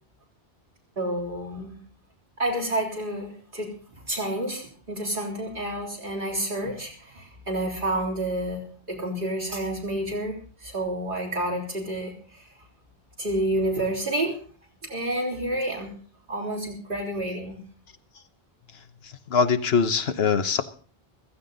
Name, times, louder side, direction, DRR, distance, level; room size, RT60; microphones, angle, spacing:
voice 1, 1.0-1.8 2.4-3.7 4.1-12.1 13.2-14.4 14.9-15.9 16.3-17.6, right 1 dB, 55° right, -2 dB, 4.0 m, -29 dB
voice 2, 19.3-20.6, left 5 dB, 80° left, 10 dB, 1.2 m, -22 dB
15.5 x 15.0 x 3.9 m, 0.41 s
omnidirectional pair, 1.0 m